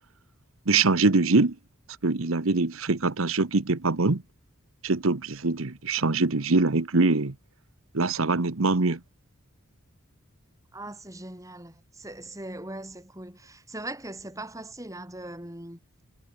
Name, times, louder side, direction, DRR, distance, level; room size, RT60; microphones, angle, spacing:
voice 1, 0.7-1.5 2.0-4.2 4.8-7.3 7.9-9.0, right 3 dB, 80° right, 1.2 m, -23 dB
voice 2, 10.7-15.8, right 1 dB, 15° right, 5.8 m, -40 dB
head